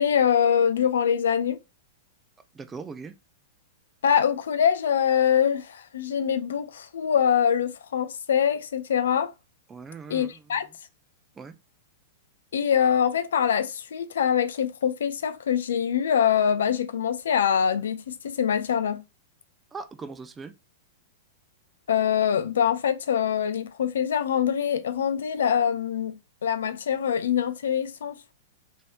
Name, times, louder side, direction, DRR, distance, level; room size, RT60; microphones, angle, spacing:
voice 1, 0.0-1.6 4.0-9.3 10.1-10.7 12.5-19.0 21.9-26.2 26.4-28.2, left 8 dB, 70° left, 0.4 m, -24 dB
voice 2, 2.5-3.1 9.7-10.4 11.4-11.5 19.7-20.5, right 4 dB, 15° right, 0.4 m, -39 dB
3.1 x 2.7 x 2.8 m
hypercardioid pair, 105°, 0 cm